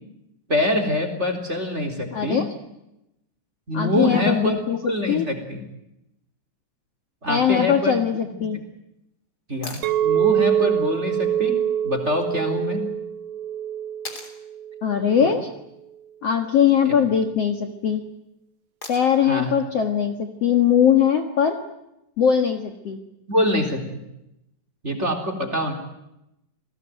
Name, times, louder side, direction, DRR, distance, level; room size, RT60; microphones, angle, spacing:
voice 1, 0.5-2.4 3.7-4.5 4.8-5.6 7.2-8.0 9.5-11.6 11.8-12.8 15.2-15.3 16.8-17.0 19.2-19.5 23.3-24.0 24.8-25.7, left 1 dB, 15° right, 7 dB, 3.2 m, -24 dB
voice 2, 2.1-2.5 3.7-4.8 5.1-5.2 7.3-8.6 14.8-15.5 16.2-18.0 18.9-21.6 22.2-23.0, left 8 dB, 80° left, 5 dB, 1.4 m, -20 dB
sound 1, 9.6-9.9 12.2-12.3 14.0-14.4 16.4-16.8 18.8-19.3 21.4-21.5, left 3 dB, 20° left, 3.3 m, -39 dB
Chink clink, 9.8-15.0, right 10 dB, 85° right, 1.9 m, -24 dB
29.5 x 19.5 x 9.2 m, 0.87 s
omnidirectional pair, 5.6 m